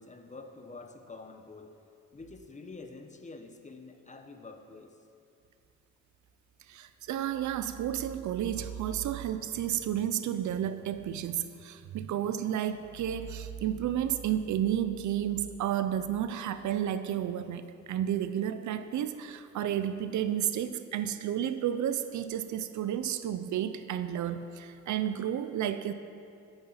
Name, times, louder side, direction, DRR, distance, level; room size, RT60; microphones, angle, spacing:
voice 1, 0.0-1.8 2.1-5.0, left 3 dB, 25° left, 6 dB, 1.3 m, -47 dB
voice 2, 6.7-25.9, right 10 dB, 70° right, 11 dB, 0.8 m, -32 dB
13.0 x 11.5 x 5.8 m, 2.4 s
cardioid pair, 90°, 30 cm